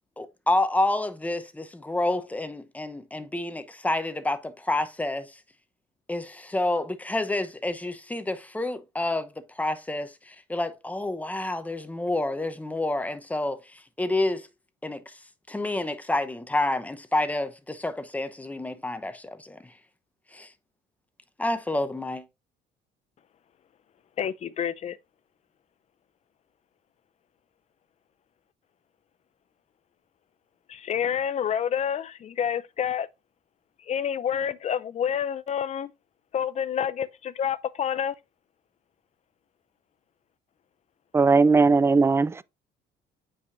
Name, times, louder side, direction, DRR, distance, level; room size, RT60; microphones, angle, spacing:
voice 1, 0.2-5.3 6.1-9.3 9.6-14.5 14.8-15.0 15.5-19.6 20.3-20.5 21.4-22.2, left 2 dB, 10° left, 0.9 m, -29 dB
voice 2, 24.2-25.0 30.7-33.1 33.8-35.9 36.3-38.1, left 8 dB, 40° left, 0.6 m, -28 dB
voice 3, 41.1-42.4, right 4 dB, 15° right, 0.3 m, -19 dB
8.4 x 4.9 x 2.6 m
cardioid pair, 110°, 17 cm